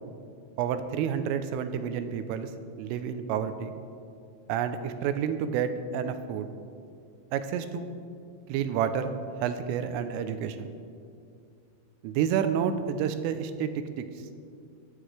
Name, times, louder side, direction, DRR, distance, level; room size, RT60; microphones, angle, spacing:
voice 1, 0.6-2.5 2.8-3.7 4.5-6.5 7.3-7.9 8.5-9.1 9.4-10.7 12.0-13.7 14.0-14.1, right 8 dB, 85° right, 9 dB, 3.1 m, -29 dB
23.0 x 9.6 x 3.3 m, 2.3 s
omnidirectional pair, 5.9 m